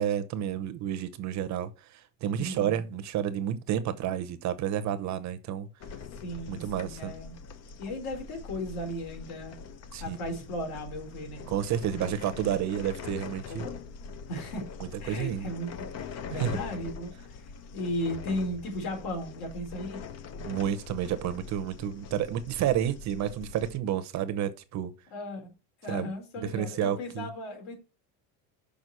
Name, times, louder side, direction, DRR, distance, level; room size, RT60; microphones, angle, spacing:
voice 1, 0.0-5.7 6.5-7.1 9.9-10.2 11.5-13.7 15.1-15.5 16.4-16.6 20.4-24.9 25.9-26.1 26.4-27.3, right 10 dB, 45° right, 0.8 m, -30 dB
voice 2, 2.4-2.7 6.2-7.4 7.8-9.5 10.0-11.5 13.5-13.7 14.3-14.7 15.0-20.0 25.1-25.5 25.8-27.7, left 1 dB, 60° left, 3.9 m, -36 dB
sound 1, 5.8-23.8, left 5 dB, 40° left, 0.8 m, -43 dB
6.2 x 5.1 x 6.6 m
cardioid pair, 155°, 41 cm